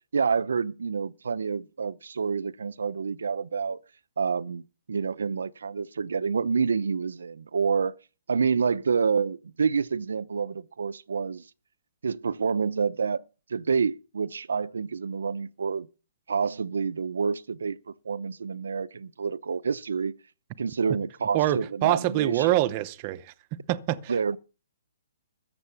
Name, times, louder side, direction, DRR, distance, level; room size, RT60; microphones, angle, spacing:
voice 1, 0.1-3.8 4.2-4.6 4.9-7.9 8.3-11.4 12.0-13.2 13.5-15.9 16.3-20.1 20.6-22.5 24.1-24.4, right 5 dB, 85° right, 0.6 m, -28 dB
voice 2, 21.3-23.3 23.7-24.4, right 14 dB, 25° right, 0.7 m, -25 dB
14.0 x 7.6 x 7.0 m
hypercardioid pair, 170°, 0 cm